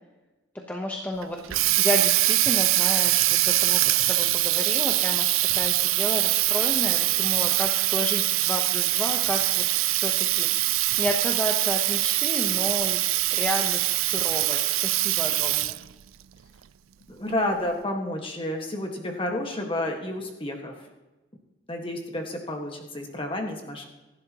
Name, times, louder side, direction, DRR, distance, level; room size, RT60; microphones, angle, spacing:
voice 1, 0.5-13.0 13.3-15.8, left 1 dB, 10° left, 0 dB, 1.0 m, -32 dB
Water tap faucet, 1.2-15.9, right 18 dB, 85° right, 0.4 m, -23 dB
voice 2, 17.1-20.7 21.7-23.8, left 1 dB, 25° left, 2 dB, 1.8 m, -30 dB
27.0 x 11.5 x 3.1 m, 1.1 s
head